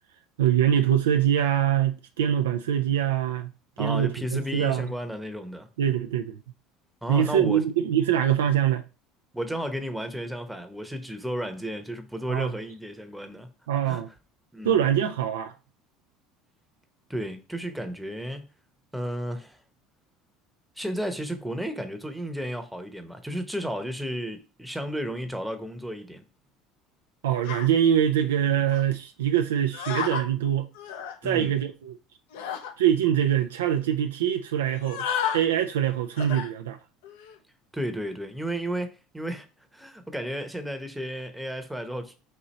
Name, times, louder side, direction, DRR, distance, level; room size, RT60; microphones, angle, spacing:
voice 1, 0.4-3.5 3.8-4.9 5.8-6.4 7.1-8.8 12.3-12.5 13.7-14.1 14.6-15.5 27.2-30.7 31.2-32.0 32.8-35.1 35.3-36.8, right 10 dB, 90° right, 0.3 m, -24 dB
voice 2, 3.8-5.7 7.0-7.6 9.3-13.5 13.8-14.0 14.5-14.8 17.1-18.5 18.9-19.6 20.8-26.2 31.2-31.5 37.7-39.5 39.7-42.1, equal, 5° right, 0.8 m, -33 dB
sound 1, 27.4-27.7 28.7-28.9 29.7-30.3 30.7-31.2 32.3-32.7 33.3-33.4 33.6-33.9 34.7-35.4 36.2-36.5 37.0-37.4, left 8 dB, 80° left, 0.7 m, -32 dB
4.2 x 2.7 x 4.1 m
hypercardioid pair, 90°, 0 cm